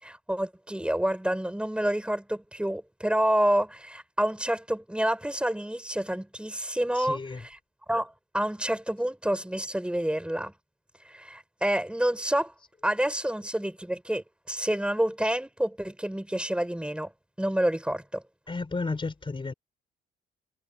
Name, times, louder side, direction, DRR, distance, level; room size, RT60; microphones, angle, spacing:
voice 1, 0.0-7.2 7.9-10.5 11.1-12.5 12.8-17.1 17.4-18.2, right 1 dB, 5° right, 6.2 m, -28 dB
voice 2, 6.9-7.5 18.5-19.5, left 3 dB, 25° left, 3.7 m, -33 dB
cardioid pair, 90°, 20 cm